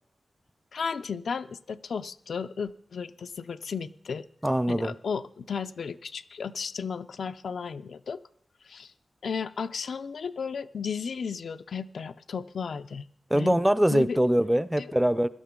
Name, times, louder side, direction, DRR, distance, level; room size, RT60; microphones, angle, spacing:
voice 1, 0.7-4.2 4.7-8.2 8.7-8.9 9.2-13.1 13.3-13.6 13.9-14.2 14.8-14.9, left 6 dB, 90° left, 11 dB, 0.4 m, -34 dB
voice 2, 4.4-4.9 13.3-15.3, right 1 dB, 10° right, 16 dB, 0.4 m, -23 dB
17.0 x 12.0 x 3.7 m, 0.66 s
wide cardioid pair, 110°, 0 cm